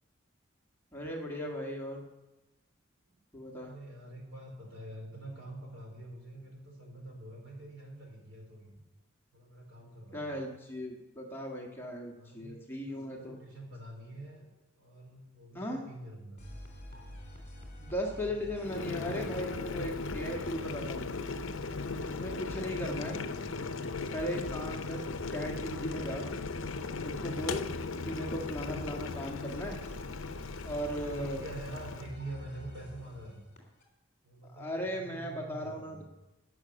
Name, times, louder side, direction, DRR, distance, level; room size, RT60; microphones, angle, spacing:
voice 1, 0.9-2.0 3.3-3.7 10.1-13.4 15.5-15.8 17.8-21.1 22.0-23.2 24.1-25.0 25.3-26.3 27.0-27.7 28.0-29.8 30.6-31.4 34.4-36.0, equal, 10° left, -1 dB, 1.5 m, -37 dB
voice 2, 3.6-8.7 9.3-10.4 12.1-14.5 14.8-16.5 16.9-17.2 19.7-20.2 30.6-33.4 34.2-36.0, right 1 dB, 60° right, 0 dB, 4.2 m, -46 dB
sound 1, 16.4-33.8, left 1 dB, 35° left, 3.4 m, -47 dB
Boiling, 18.6-32.1, left 4 dB, 70° left, 0.6 m, -38 dB
14.0 x 6.2 x 9.7 m, 1.0 s
head